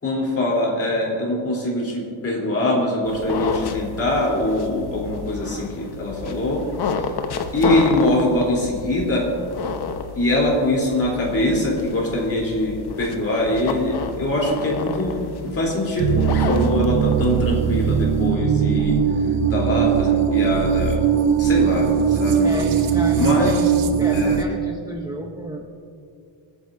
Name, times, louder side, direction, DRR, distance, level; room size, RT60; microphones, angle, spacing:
voice 1, 0.0-6.6 6.9-7.1 7.5-9.3 10.1-15.2 15.4-19.0 19.5-21.0 21.4-22.5 23.2-23.6 24.1-24.4, left 1 dB, 30° left, -3 dB, 3.6 m, -23 dB
sound 1, 3.0-18.3, left 5 dB, 50° left, 1.0 m, -30 dB
sound 2, 16.0-24.5, right 7 dB, 80° right, 0.9 m, -20 dB
voice 2, 22.4-23.6 24.0-25.7, right 1 dB, 10° right, 0 dB, 0.8 m, -31 dB
25.5 x 9.7 x 2.7 m, 2.3 s
cardioid pair, 145°, 48 cm